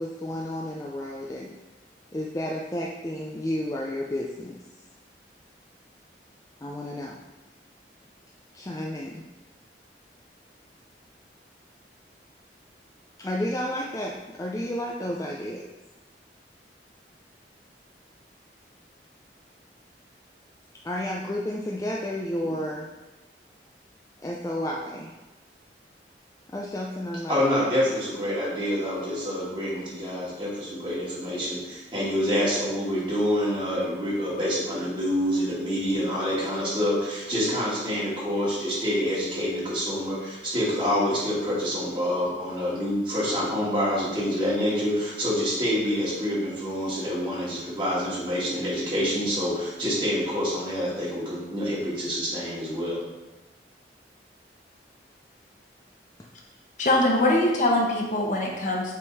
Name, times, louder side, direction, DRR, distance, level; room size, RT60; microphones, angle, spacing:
voice 1, 0.0-1.5 2.1-4.6 6.6-7.2 8.5-9.2 13.2-15.7 20.8-22.9 24.2-25.1 26.5-27.4 56.2-56.3, left 1 dB, 20° left, -2 dB, 0.4 m, -31 dB
voice 2, 27.3-53.0, equal, 25° right, -7 dB, 2.2 m, -27 dB
voice 3, 56.8-58.9, left 1 dB, 45° left, -1 dB, 1.0 m, -22 dB
6.9 x 3.6 x 4.8 m, 1.1 s
head